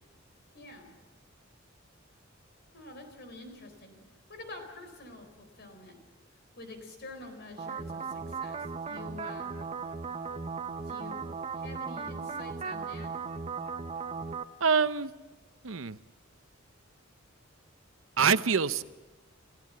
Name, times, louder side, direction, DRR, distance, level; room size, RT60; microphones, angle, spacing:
voice 1, 0.5-0.9 2.7-4.0 4.3-6.0 6.6-9.5 10.9-11.2 11.5-13.1, left 2 dB, 55° left, 7 dB, 4.1 m, -47 dB
sound 1, 7.6-14.4, right 5 dB, 30° right, 0.8 m, -37 dB
voice 2, 14.6-15.1 15.6-16.0 18.2-18.8, right 6 dB, 75° right, 13 dB, 0.7 m, -25 dB
28.5 x 14.5 x 7.5 m, 1.2 s
head